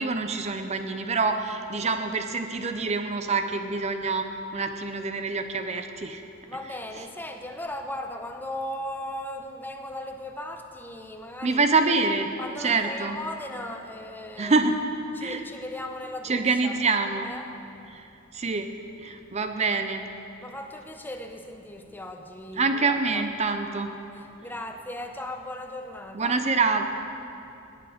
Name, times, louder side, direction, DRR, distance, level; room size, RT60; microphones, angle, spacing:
voice 1, 0.0-6.2 11.4-12.3 12.6-13.2 14.4-14.8 15.2-15.4 16.2-17.3 17.9-18.1 18.3-18.7 19.0-20.1 22.6-23.9 26.1-26.8, right 4 dB, 35° right, 7 dB, 0.6 m, -26 dB
voice 2, 6.5-11.6 12.4-14.6 15.1-16.8 17.2-17.5 20.4-23.3 24.1-26.4, left 1 dB, 10° left, 5 dB, 0.7 m, -37 dB
18.5 x 9.5 x 5.0 m, 2.8 s
head